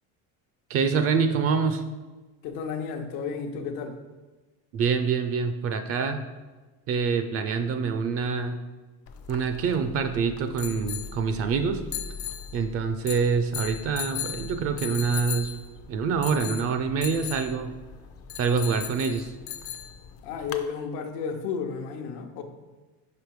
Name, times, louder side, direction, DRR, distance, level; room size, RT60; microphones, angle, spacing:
voice 1, 0.7-1.8 4.7-6.2 6.9-8.6 9.3-11.8 12.5-15.5 15.9-17.7 18.4-19.3, right 5 dB, 45° right, 8 dB, 0.4 m, -26 dB
voice 2, 2.4-4.0 20.2-22.4, left 6 dB, 80° left, 5 dB, 0.9 m, -32 dB
sound 1, 9.1-20.7, left 9 dB, 45° left, 0.5 m, -38 dB
5.1 x 5.0 x 4.6 m, 1.2 s
cardioid pair, 145°, 35 cm